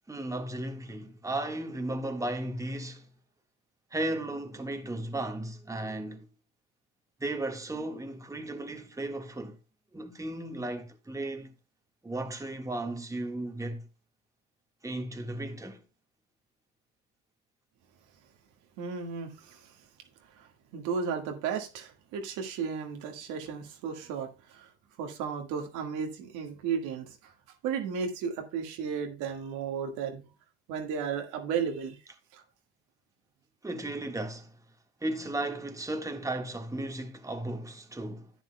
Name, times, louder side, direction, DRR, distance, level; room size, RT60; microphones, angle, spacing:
voice 1, 0.1-3.1 3.9-6.3 7.2-9.6 9.9-11.5 12.0-13.9 14.8-15.8 33.6-34.5 35.0-38.3, right 1 dB, 10° right, 1.5 m, -35 dB
voice 2, 18.8-19.8 20.3-24.7 25.0-27.3 27.6-30.2 30.7-32.0 32.3-32.4, right 6 dB, 75° right, 1.8 m, -34 dB
11.0 x 9.1 x 2.2 m
supercardioid pair, 70°, 30 cm